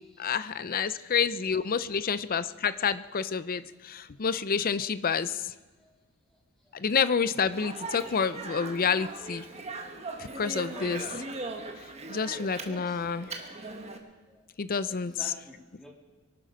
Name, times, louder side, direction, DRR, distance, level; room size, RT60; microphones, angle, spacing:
voice 1, 0.2-5.5 6.7-9.5 9.9-11.0 12.1-13.4 14.6-15.3, left 6 dB, 40° left, 14 dB, 0.5 m, -29 dB
Speech, 7.5-14.0, right 3 dB, 30° right, 1.5 m, -39 dB
voice 2, 12.6-13.0 14.4-14.5 14.9-15.9, left 1 dB, ahead, -1 dB, 2.8 m, -47 dB
23.5 x 12.0 x 5.1 m, 1.3 s
head